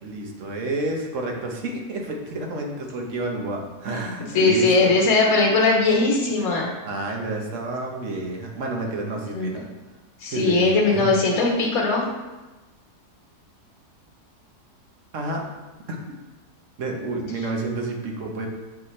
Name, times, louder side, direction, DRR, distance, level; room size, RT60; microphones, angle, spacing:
voice 1, 0.0-5.0 6.8-9.6 10.3-11.1 15.1-15.5 15.9-16.0 16.8-18.5, right 2 dB, 55° right, 1 dB, 1.2 m, -29 dB
voice 2, 4.3-6.7 9.3-9.5 10.2-12.0, left 3 dB, 55° left, -2 dB, 1.6 m, -19 dB
7.5 x 4.1 x 3.2 m, 1.2 s
omnidirectional pair, 1.7 m